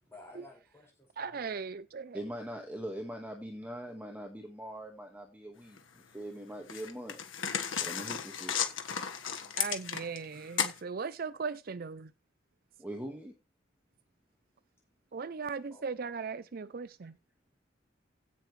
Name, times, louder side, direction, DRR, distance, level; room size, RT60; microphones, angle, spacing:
voice 1, 0.0-1.5 15.4-15.8, left 2 dB, 15° left, 5.5 m, -55 dB
voice 2, 1.2-2.2 9.6-12.1 15.1-17.2, right 5 dB, 50° right, 0.5 m, -38 dB
voice 3, 2.1-7.2 7.8-8.6 12.8-13.3, right 1 dB, 10° right, 1.7 m, -42 dB
sound 1, 5.8-5.9 6.7-10.2 10.6-10.8, left 8 dB, 85° left, 1.6 m, -34 dB
16.5 x 6.9 x 3.2 m
head